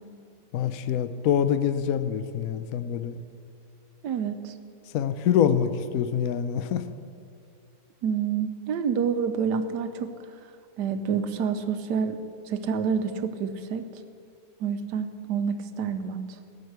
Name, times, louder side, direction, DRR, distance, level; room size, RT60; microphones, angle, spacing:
voice 1, 0.5-3.2 4.9-6.8, left 8 dB, 65° left, 11 dB, 1.0 m, -25 dB
voice 2, 4.0-4.5 8.0-10.1 10.8-12.2 12.5-13.8 14.6-16.2, right 6 dB, 80° right, 9 dB, 1.4 m, -28 dB
16.5 x 6.6 x 8.0 m, 2.4 s
omnidirectional pair, 1.8 m